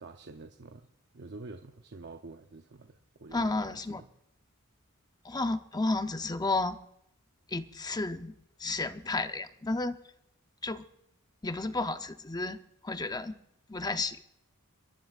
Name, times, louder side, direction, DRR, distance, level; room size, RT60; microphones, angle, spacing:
voice 1, 0.0-0.9 1.1-4.1, right 3 dB, 50° right, 5 dB, 0.7 m, -47 dB
voice 2, 3.3-4.0 5.2-6.8 7.5-10.0 10.6-10.9 11.4-13.3 13.7-14.2, left 2 dB, 20° left, 8 dB, 0.7 m, -32 dB
30.0 x 11.5 x 2.5 m, 0.83 s
head